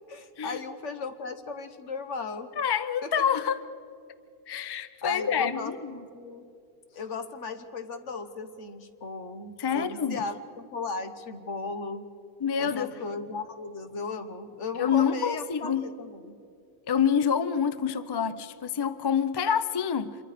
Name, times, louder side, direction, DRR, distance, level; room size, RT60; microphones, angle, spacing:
voice 1, 0.1-2.6 3.0-3.1 5.0-6.4 6.9-12.1 12.6-16.3, left 4 dB, 60° left, 9 dB, 1.5 m, -36 dB
voice 2, 2.6-3.6 4.5-6.0 9.6-10.2 12.4-12.9 14.8-15.9 16.9-20.2, left 7 dB, 40° left, 13 dB, 0.3 m, -27 dB
26.0 x 22.5 x 5.1 m, 2.5 s
omnidirectional pair, 1.4 m